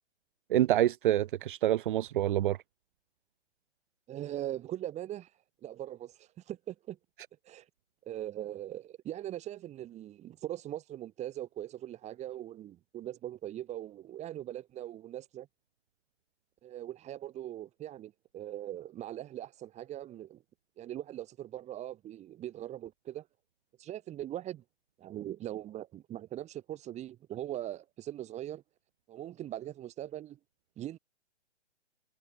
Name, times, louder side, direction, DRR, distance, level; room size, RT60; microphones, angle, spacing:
voice 1, 0.5-2.6, right 13 dB, 45° right, 1.7 m, -27 dB
voice 2, 4.1-5.3 5.6-7.0 7.4-7.7 8.0-15.5 16.6-20.4 20.8-23.3 23.8-24.6 25.0-28.6 29.1-30.4 30.8-31.0, right 12 dB, 20° right, 5.4 m, -41 dB
figure-of-eight pair, 135°, 36 cm